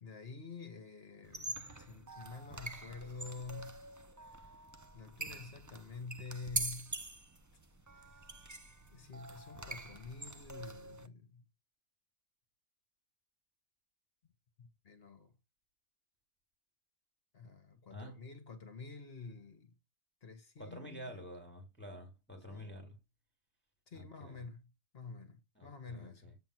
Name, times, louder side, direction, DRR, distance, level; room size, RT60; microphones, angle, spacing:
voice 1, 0.0-3.8 4.2-4.5 4.9-7.0 7.9-8.5 8.9-11.5 14.6-15.4 17.3-19.7 20.2-21.2 22.5-22.8 23.9-26.4, left 4 dB, 50° left, 1.4 m, -49 dB
sound 1, 1.2-11.1, right 2 dB, 20° right, 0.5 m, -44 dB
voice 2, 17.9-18.2 20.6-23.0 23.9-24.4 25.6-26.3, equal, 10° left, 2.0 m, -49 dB
8.0 x 3.6 x 6.0 m
omnidirectional pair, 1.4 m